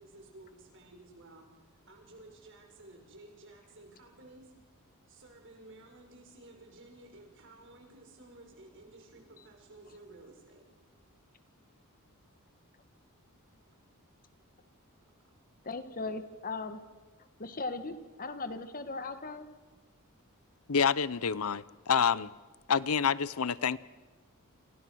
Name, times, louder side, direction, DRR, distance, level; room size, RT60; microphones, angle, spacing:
voice 1, 0.0-4.5 5.1-10.8 12.1-12.2 13.5-13.7 15.0-15.1, right 2 dB, 60° right, 3 dB, 5.9 m, -54 dB
voice 2, 15.6-16.8 17.4-19.5, left 3 dB, 40° left, 9 dB, 1.7 m, -38 dB
voice 3, 20.7-22.3 22.7-23.8, left 6 dB, 70° left, 19 dB, 0.7 m, -28 dB
29.5 x 28.0 x 6.3 m, 1.3 s
head